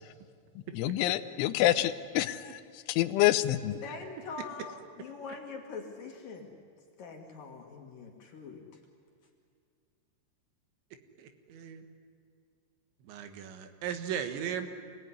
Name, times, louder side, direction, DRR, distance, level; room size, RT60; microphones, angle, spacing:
voice 1, 0.7-3.8, left 14 dB, 80° left, 11 dB, 3.1 m, -27 dB
voice 2, 3.8-6.5 7.0-8.8, left 5 dB, 55° left, 1 dB, 2.8 m, -43 dB
voice 3, 11.2-11.9 13.0-14.7, right 8 dB, 70° right, 8 dB, 3.5 m, -37 dB
27.0 x 19.5 x 9.8 m, 2.2 s
omnidirectional pair, 5.8 m